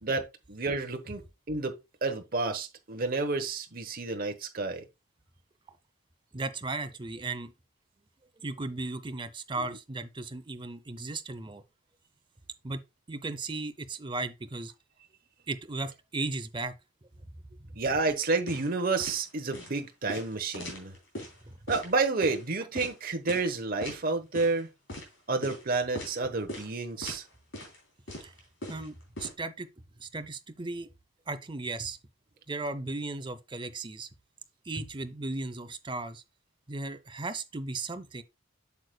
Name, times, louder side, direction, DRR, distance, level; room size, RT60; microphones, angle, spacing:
voice 1, 0.0-1.2 1.5-4.8 17.8-20.9 21.7-24.7 25.3-27.2, right 3 dB, 45° right, 1.0 m, -30 dB
voice 2, 6.3-7.5 8.4-11.6 12.6-12.8 13.1-14.7 15.5-16.7 17.6-17.8 21.5-21.6 28.2-28.3 28.7-30.9 31.3-32.0 32.5-34.1 34.6-36.2 36.7-38.2, right 3 dB, 25° right, 0.6 m, -36 dB
sound 1, 18.5-18.7 19.0-19.2 19.5-19.7 20.1-21.3 21.7-21.9 22.2-22.4 22.8-22.9 23.3-23.5 23.8-24.0 24.3-24.6 24.9-25.1 25.4-25.6 26.0-26.2 26.5-26.7 27.0-27.2 27.5-27.8 28.1-29.3, left 1 dB, 60° left, 3.3 m, -40 dB
8.1 x 6.6 x 2.2 m
head